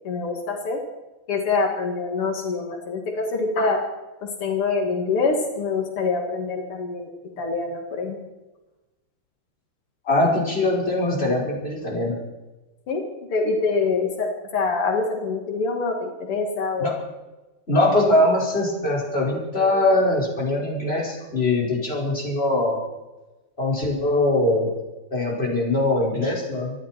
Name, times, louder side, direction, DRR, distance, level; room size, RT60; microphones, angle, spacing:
voice 1, 0.0-0.8 1.3-3.8 4.2-7.1 7.4-8.2 12.9-13.0 13.3-16.9 17.7-17.9, left 4 dB, 85° left, 3 dB, 3.0 m, -25 dB
voice 2, 10.1-12.2 16.8-16.9 17.7-22.8 23.6-24.7 25.1-26.7, left 2 dB, 25° left, -3 dB, 5.6 m, -22 dB
26.5 x 11.5 x 4.5 m, 1.1 s
omnidirectional pair, 2.4 m